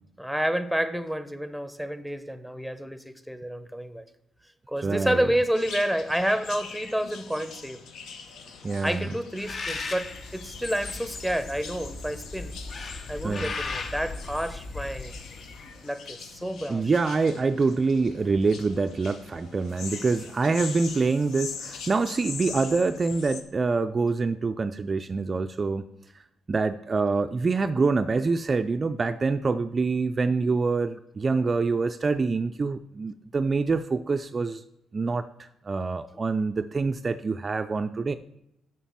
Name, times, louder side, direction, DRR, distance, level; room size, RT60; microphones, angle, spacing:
voice 1, 0.2-4.0 4.7-7.8 8.8-12.6 13.1-15.1 15.8-16.9, equal, ahead, 11 dB, 0.8 m, -29 dB
voice 2, 4.8-5.3 8.6-9.1 13.2-13.5 16.7-25.8 26.5-34.6 34.9-38.1, right 4 dB, 35° right, 9 dB, 0.4 m, -26 dB
sound 1, 5.5-23.4, left 5 dB, 75° left, 1.2 m, -42 dB
Bird, 9.4-15.8, left 3 dB, 45° left, 0.8 m, -37 dB
7.1 x 6.0 x 7.2 m, 0.83 s
cardioid pair, 90°, 0 cm